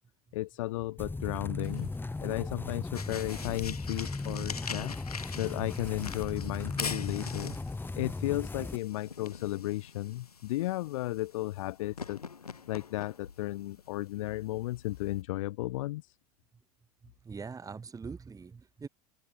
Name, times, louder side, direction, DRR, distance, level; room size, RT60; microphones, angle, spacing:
voice 1, 0.3-1.9 2.2-5.0 5.3-7.6 7.9-12.2 12.7-16.1, left 17 dB, 60° left, 1.5 m, -34 dB
sound 1, 1.0-8.8, left 3 dB, 10° left, 5.9 m, -37 dB
sound 2, 1.6-15.2, left 5 dB, 80° left, 2.8 m, -44 dB
voice 2, 17.0-18.9, right 5 dB, 20° right, 3.8 m, -43 dB
figure-of-eight pair, 75°, 19 cm